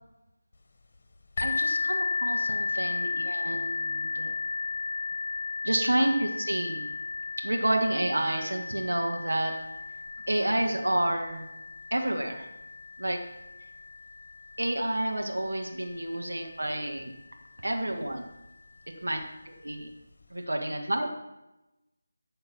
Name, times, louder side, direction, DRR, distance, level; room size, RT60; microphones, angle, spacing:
sound 1, 1.4-16.9 17.7-17.8 18.3-18.4, left 4 dB, 45° left, 1.3 m, -34 dB
voice 1, 1.4-4.3 5.6-6.9 7.4-9.6 10.3-11.5 11.9-12.5 13.0-13.2 14.6-17.1 17.6-18.2 19.0-19.9 20.3-21.1, right 1 dB, 80° right, 3 dB, 1.6 m, -29 dB
15.0 x 6.5 x 4.4 m, 0.98 s
figure-of-eight pair, 165°, 0 cm